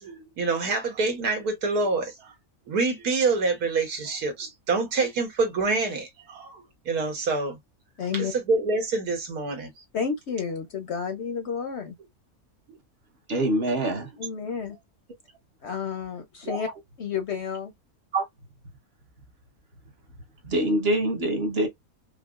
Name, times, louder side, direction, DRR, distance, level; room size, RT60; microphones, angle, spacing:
voice 1, 0.0-2.3 2.7-7.6 8.1-9.7 12.7-12.8, right 3 dB, 85° right, 1.6 m, -26 dB
voice 2, 8.0-8.3 9.9-11.9 14.2-14.8 15.6-16.7 17.0-17.7, left 6 dB, 60° left, 0.8 m, -31 dB
voice 3, 13.3-14.1 16.4-16.6 18.1-18.2 20.4-21.7, right 1 dB, 45° right, 1.1 m, -24 dB
4.9 x 2.0 x 2.3 m
omnidirectional pair, 1.6 m